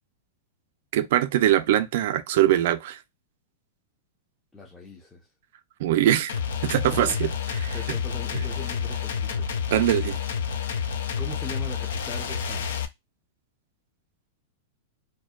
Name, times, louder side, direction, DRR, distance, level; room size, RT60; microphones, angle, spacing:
voice 1, 0.9-3.0 5.8-6.3 6.6-7.3 7.6-8.0 8.3-8.4 9.7-10.2, right 12 dB, 65° right, 0.4 m, -22 dB
voice 2, 4.5-5.3 7.1-7.3 7.7-9.5 11.2-12.7, left 3 dB, 10° left, 0.5 m, -40 dB
sound 1, 6.3-12.8, left 7 dB, 80° left, 0.4 m, -29 dB
2.6 x 2.1 x 2.3 m
hypercardioid pair, 135°, 0 cm